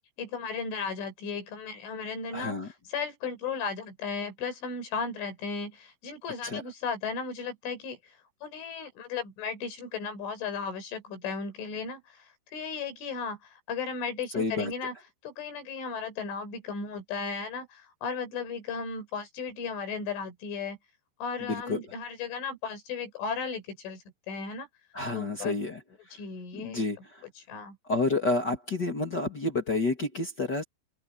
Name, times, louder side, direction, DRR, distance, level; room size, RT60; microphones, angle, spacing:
voice 1, 0.2-8.0 8.4-14.9 15.2-20.8 21.2-24.7 25.1-25.6 26.1-26.8 27.4-27.8, left 5 dB, 80° left, 7.8 m, -35 dB
voice 2, 2.3-2.7 6.4-6.6 14.3-14.7 21.4-21.8 24.9-25.8 26.5-27.2 27.8-30.6, left 3 dB, 40° left, 1.5 m, -29 dB
omnidirectional pair, 5.5 m